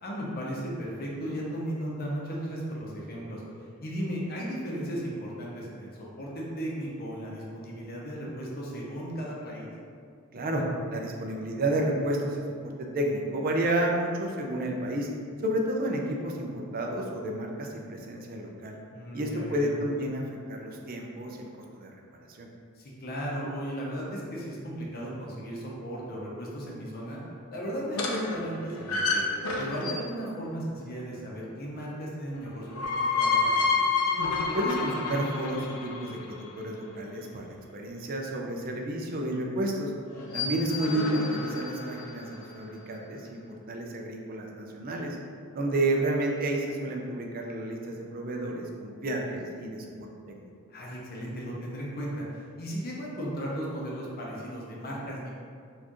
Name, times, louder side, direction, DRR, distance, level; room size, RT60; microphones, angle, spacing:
voice 1, 0.0-3.4 3.8-9.7 18.9-19.7 22.8-27.2 27.5-29.2 29.6-33.7 40.1-40.5 50.7-55.3, equal, 45° left, -4 dB, 0.7 m, -36 dB
voice 2, 10.3-15.1 15.4-18.8 19.1-21.5 21.7-21.9 22.4-22.5 34.5-39.9 40.3-45.2 45.5-50.5, right 1 dB, 40° right, 1 dB, 0.4 m, -31 dB
sound 1, 27.9-30.3 32.5-36.5 40.1-42.4, left 4 dB, 90° left, 0.5 m, -29 dB
4.3 x 2.5 x 2.9 m, 2.2 s
head